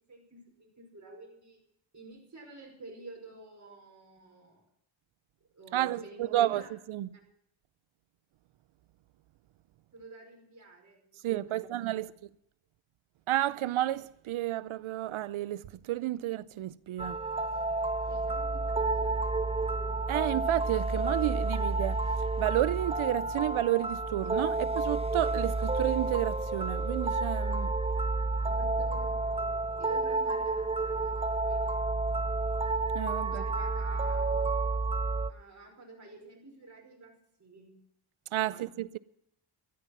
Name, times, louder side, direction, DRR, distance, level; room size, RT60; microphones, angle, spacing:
voice 1, 0.1-1.6 1.9-4.7 5.5-6.7 9.9-12.0 18.1-20.2 27.5-27.7 28.4-32.3 33.3-34.5 35.3-37.8 38.5-38.7, right 2 dB, 35° right, 5.3 m, -50 dB
voice 2, 5.7-7.1 11.2-12.1 13.3-17.2 20.1-22.0 22.4-27.7 32.9-33.4 38.3-39.0, right 14 dB, 80° right, 0.6 m, -31 dB
sound 1, 17.0-35.3, right 3 dB, 15° right, 0.4 m, -30 dB
13.5 x 13.0 x 6.0 m
wide cardioid pair, 105°, 48 cm